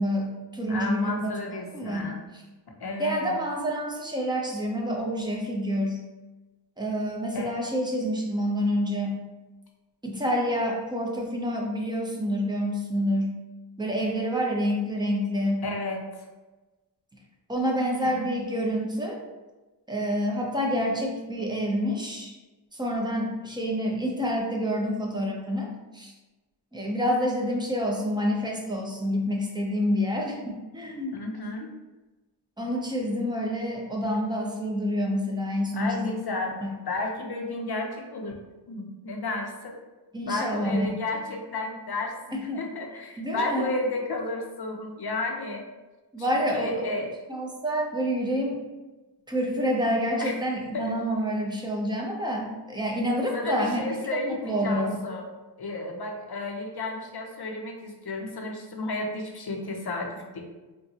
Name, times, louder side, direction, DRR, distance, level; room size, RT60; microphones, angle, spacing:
voice 1, 0.0-1.3 1.7-2.4 3.0-6.0 6.8-9.2 10.0-13.4 13.8-15.7 17.5-19.2 19.9-22.3 22.7-26.1 26.7-31.2 32.6-36.2 36.6-36.7 40.1-40.9 42.3-42.6 43.2-43.7 46.1-46.8 47.3-48.6 49.3-53.8 54.1-55.0, equal, 10° right, 0 dB, 0.5 m, -28 dB
voice 2, 0.7-2.2 2.8-3.4 7.3-7.5 15.6-16.0 18.0-18.3 31.1-31.8 35.7-38.4 38.7-39.8 40.3-45.7 46.2-47.1 50.2-50.4 50.7-50.9 53.3-55.2 55.6-60.4, left 2 dB, 60° left, 1 dB, 0.6 m, -32 dB
3.7 x 2.2 x 2.7 m, 1.2 s
wide cardioid pair, 60°, 43 cm